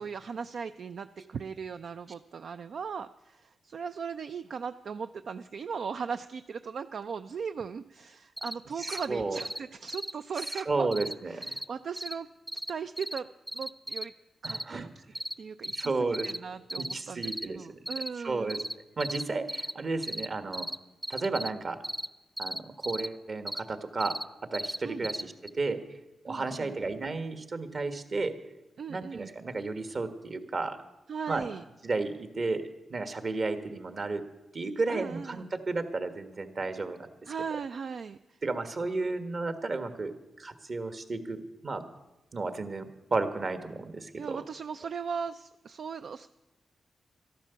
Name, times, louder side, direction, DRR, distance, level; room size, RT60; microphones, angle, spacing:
voice 1, 0.0-10.9 11.3-12.3 12.5-13.3 13.5-14.1 14.4-15.0 15.4-15.9 16.2-18.6 24.8-25.1 26.3-26.7 28.8-29.3 31.1-31.6 34.9-35.5 37.3-38.4 44.2-46.3, right 6 dB, 70° right, 11 dB, 0.4 m, -38 dB
sound 1, 8.4-8.5 8.8-9.1 9.4-9.6 9.9-10.1 10.4-10.6 10.9-11.1 11.4-11.6 12.0-12.1 12.5-12.7 13.0-13.2 13.5-14.0 14.4-14.6 15.1-15.3 15.6-15.9 16.1-16.4 16.7-16.9 17.2-17.5 17.9-18.1 18.5-18.7 19.0-19.2 19.5-19.7 20.0-20.3 20.5-20.8 21.0-21.5 21.8-22.1 22.4-23.1 23.5-23.6 24.0-24.2 24.5-24.8 25.0-25.2 25.5-25.6, equal, 10° right, 0.7 m, -35 dB
voice 2, 8.8-9.4 10.6-11.6 14.4-14.9 15.7-16.3 16.8-17.9 18.2-18.6 19.0-20.7 21.1-21.8 22.4-24.1 24.5-25.8 26.2-28.4 28.9-30.8 31.3-31.5 31.8-32.6 32.9-34.2 34.5-37.3 38.4-40.1 40.4-41.8 42.3-44.4, right 3 dB, 50° right, 9 dB, 1.6 m, -33 dB
13.0 x 12.0 x 7.0 m, 1.0 s
cardioid pair, 70°, 0 cm